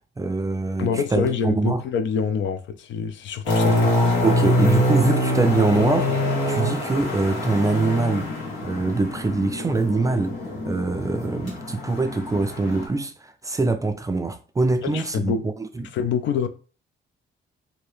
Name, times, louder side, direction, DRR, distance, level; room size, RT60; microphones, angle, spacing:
voice 1, 0.2-1.8 4.2-8.3 8.6-10.4 10.7-15.9, right 3 dB, 15° right, 0.3 m, -23 dB
voice 2, 0.8-3.9 14.8-15.5 15.9-16.5, left 6 dB, 70° left, 0.4 m, -26 dB
sound 1, 3.4-12.9, left 1 dB, 85° left, 1.6 m, -24 dB
2.8 x 2.6 x 3.3 m
cardioid pair, 90°, 20 cm